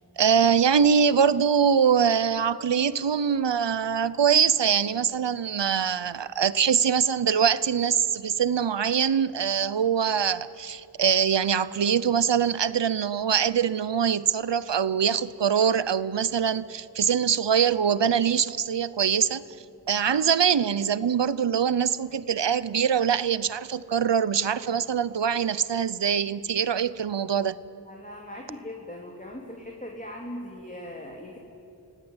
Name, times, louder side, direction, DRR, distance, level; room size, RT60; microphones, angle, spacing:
voice 1, 0.2-19.4 19.9-27.6, right 7 dB, 85° right, 17 dB, 0.8 m, -23 dB
voice 2, 27.9-31.4, left 1 dB, 20° left, 0 dB, 2.8 m, -39 dB
26.0 x 17.0 x 9.7 m, 2.6 s
wide cardioid pair, 40°, 42 cm